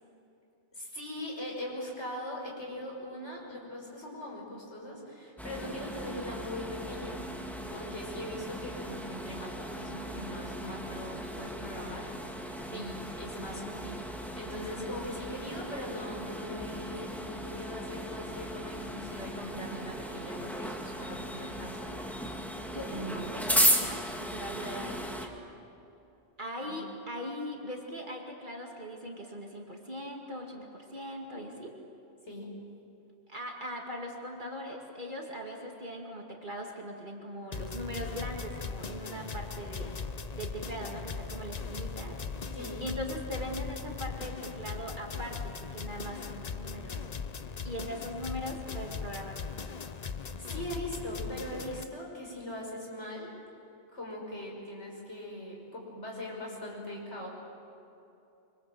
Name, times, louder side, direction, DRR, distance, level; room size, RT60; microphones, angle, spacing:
voice 1, 0.7-7.2 7.7-22.6 22.8-23.4 24.6-24.9 26.6-26.8 32.3-32.5 42.5-42.8 50.2-53.3 53.9-57.3, left 1 dB, 85° left, -1 dB, 6.0 m, -41 dB
sound 1, 5.4-25.3, equal, ahead, 2.0 m, -36 dB
voice 2, 22.7-25.3 26.4-31.7 33.3-39.9 40.4-42.2 42.8-47.1 47.6-49.9, equal, 45° right, 0 dB, 2.6 m, -40 dB
sound 2, 37.5-51.8, left 5 dB, 40° left, 0.8 m, -39 dB
25.0 x 24.5 x 7.8 m, 2.8 s
omnidirectional pair, 1.1 m